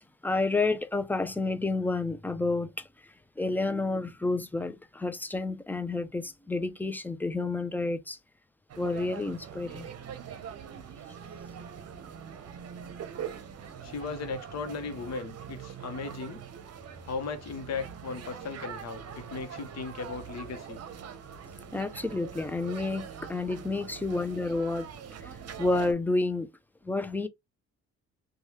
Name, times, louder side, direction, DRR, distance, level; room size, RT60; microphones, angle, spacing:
voice 1, 0.2-8.2 8.8-9.9 21.7-24.9 25.2-26.5 26.8-27.3, left 3 dB, 5° left, 0.4 m, -30 dB
sound 1, 8.7-25.9, right 7 dB, 55° right, 0.7 m, -43 dB
voice 2, 13.8-16.4 17.0-20.8, left 4 dB, 60° left, 0.9 m, -37 dB
3.1 x 2.3 x 2.8 m
cardioid pair, 90°, 30 cm